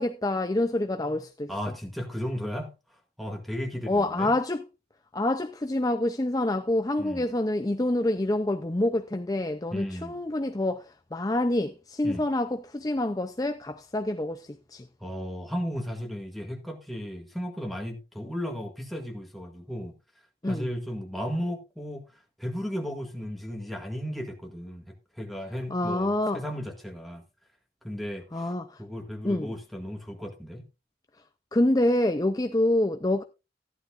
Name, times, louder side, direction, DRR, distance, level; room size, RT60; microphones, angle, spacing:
voice 1, 0.0-1.5 3.9-4.6 5.1-14.9 20.4-20.7 25.7-26.4 28.3-28.8 29.2-29.5 31.5-33.2, left 1 dB, 20° left, 0.5 m, -27 dB
voice 2, 1.5-2.7 3.2-4.3 7.0-7.3 9.7-10.2 12.0-12.3 15.0-19.9 20.5-22.1 22.4-27.2 27.8-28.5 28.8-30.7, equal, ahead, 1.9 m, -35 dB
14.5 x 11.0 x 2.5 m
head